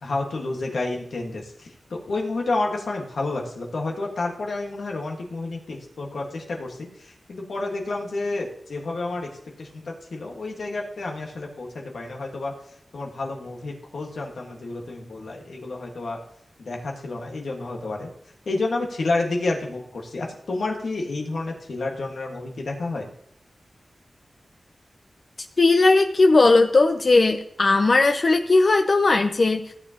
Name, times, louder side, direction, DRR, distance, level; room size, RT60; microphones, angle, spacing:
voice 1, 0.0-9.3 9.6-12.5 12.9-16.2 16.6-18.1 18.5-23.1, left 2 dB, 85° left, 0 dB, 1.6 m, -30 dB
voice 2, 25.6-29.7, left 3 dB, 55° left, 5 dB, 0.6 m, -18 dB
15.0 x 7.3 x 2.9 m, 0.70 s
wide cardioid pair, 65°, 0 cm